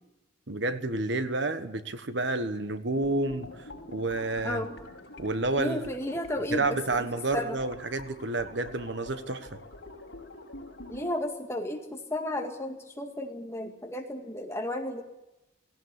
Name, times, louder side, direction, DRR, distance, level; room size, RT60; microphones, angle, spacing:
voice 1, 0.5-4.6 5.2-5.8 6.5-9.6, right 2 dB, 60° right, 10 dB, 1.3 m, -30 dB
sound 1, 2.9-11.1, left 2 dB, 60° left, 5.7 m, -47 dB
voice 2, 4.4-4.8 5.6-7.1 7.3-7.6 10.9-15.0, left 1 dB, 15° left, 3 dB, 2.1 m, -33 dB
18.5 x 17.5 x 9.8 m, 0.96 s
head